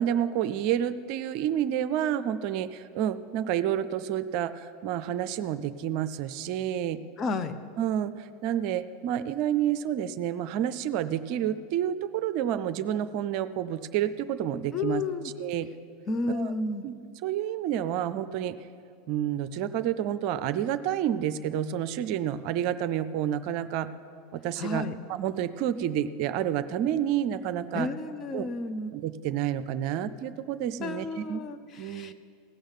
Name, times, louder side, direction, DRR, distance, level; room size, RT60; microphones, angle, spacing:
voice 1, 0.0-7.0 7.8-15.0 15.4-15.7 16.3-16.5 16.8-16.9 17.2-18.6 19.1-23.9 24.3-24.8 25.1-27.9 28.3-28.5 28.9-31.4 31.8-32.1, right 10 dB, 50° right, 12 dB, 0.5 m, -29 dB
voice 2, 7.2-7.5 14.7-15.3 16.1-16.8 24.6-25.0 27.7-28.9 30.8-32.1, left 3 dB, 35° left, 9 dB, 0.8 m, -32 dB
16.5 x 6.4 x 9.0 m, 2.3 s
figure-of-eight pair, 80°, 0 cm